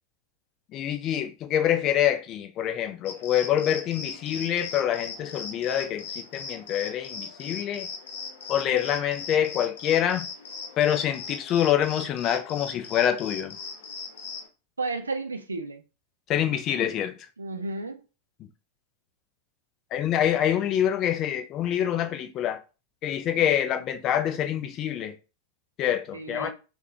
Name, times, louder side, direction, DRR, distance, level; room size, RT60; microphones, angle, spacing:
voice 1, 0.7-7.9 8.5-10.3 10.8-13.6 16.3-17.1 19.9-22.6 23.0-25.1 25.8-26.5, left 10 dB, 35° left, 0.5 m, -26 dB
sound 1, 3.0-14.5, left 5 dB, 55° left, 0.8 m, -39 dB
voice 2, 14.8-15.8 17.4-18.0 26.1-26.5, right 3 dB, 75° right, 0.4 m, -32 dB
3.6 x 2.3 x 3.3 m
figure-of-eight pair, 90°, 0 cm